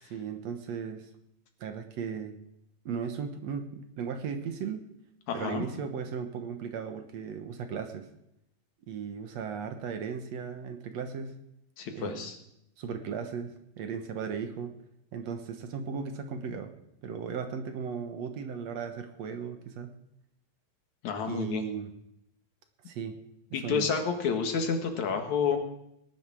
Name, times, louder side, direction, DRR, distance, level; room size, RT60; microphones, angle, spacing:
voice 1, 0.0-1.1 1.6-2.4 2.9-4.8 5.3-8.1 8.9-11.4 11.9-12.3 12.8-14.7 15.1-16.7 17.0-20.0 21.3-21.9 22.9-23.1 23.5-23.9, right 6 dB, 65° right, 6 dB, 2.4 m, -36 dB
voice 2, 5.3-5.7 11.8-12.4 21.0-21.6 23.5-25.6, left 6 dB, 75° left, 4 dB, 3.0 m, -29 dB
19.0 x 11.0 x 6.3 m, 0.80 s
omnidirectional pair, 3.4 m